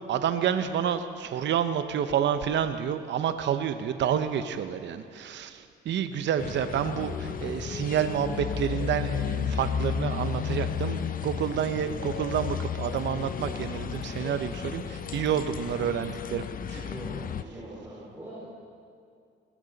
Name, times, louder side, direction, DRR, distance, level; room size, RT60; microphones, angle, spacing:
voice 1, 0.1-16.4 16.7-16.8, right 9 dB, 65° right, 9 dB, 0.7 m, -29 dB
sound 1, 6.4-13.5, left 3 dB, 85° left, 3.6 m, -44 dB
sound 2, 6.4-17.4, left 8 dB, 45° left, 0.6 m, -33 dB
voice 2, 16.7-18.4, right 1 dB, 15° right, -8 dB, 4.5 m, -42 dB
21.0 x 12.5 x 4.0 m, 2.4 s
cardioid pair, 90°, 20 cm